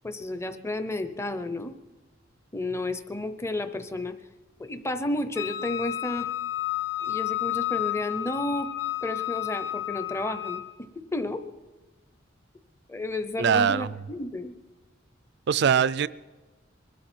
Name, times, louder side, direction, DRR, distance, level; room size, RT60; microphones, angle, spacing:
voice 1, 0.0-1.7 2.5-4.2 4.6-6.3 7.0-8.7 9.0-10.6 11.0-11.4 12.9-14.5, left 2 dB, 15° left, 0.7 m, -31 dB
Wind instrument woodwind instrument, 5.4-10.7, left 14 dB, 60° left, 0.8 m, -31 dB
voice 2, 13.4-13.9 15.5-16.1, right 7 dB, 55° right, 0.4 m, -22 dB
22.5 x 12.5 x 4.4 m
head